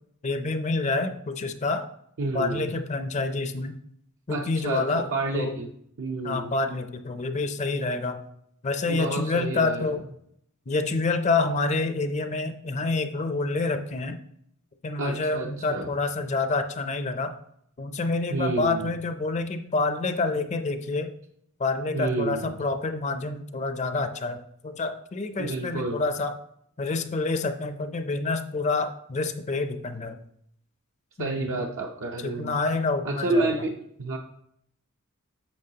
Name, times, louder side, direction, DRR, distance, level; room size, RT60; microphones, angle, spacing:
voice 1, 0.2-1.9 2.3-3.8 4.3-5.1 5.3-5.5 6.2-8.2 8.6-10.0 10.7-14.2 14.8-17.3 17.8-21.1 21.6-24.4 24.6-26.3 26.8-30.2 31.2-31.6 32.2-33.5, left 3 dB, 35° left, 9 dB, 0.5 m, -27 dB
voice 2, 2.2-2.7 4.3-5.7 6.0-6.5 8.9-9.9 15.0-15.9 18.3-18.9 21.9-22.5 25.4-26.0 31.2-32.6 33.0-33.7 34.0-34.2, right 2 dB, 65° right, 1 dB, 0.6 m, -29 dB
8.6 x 6.2 x 2.8 m, 0.70 s
head